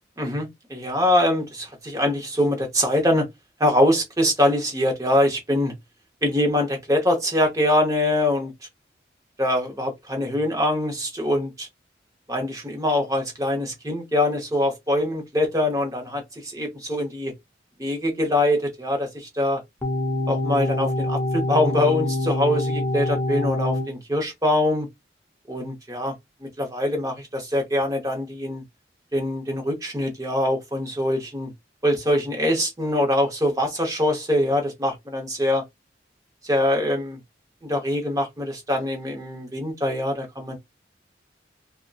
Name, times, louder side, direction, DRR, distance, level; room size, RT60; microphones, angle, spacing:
voice 1, 0.2-3.3 3.6-5.7 6.2-8.5 9.4-11.7 12.3-17.3 17.8-19.6 20.3-24.9 25.5-26.1 26.4-28.6 29.1-31.5 31.8-35.6 36.4-37.2 37.6-40.6, left 1 dB, 20° right, 0.7 m, -23 dB
sound 1, 19.8-23.9, left 1 dB, 15° left, 0.4 m, -25 dB
2.5 x 2.1 x 2.3 m
head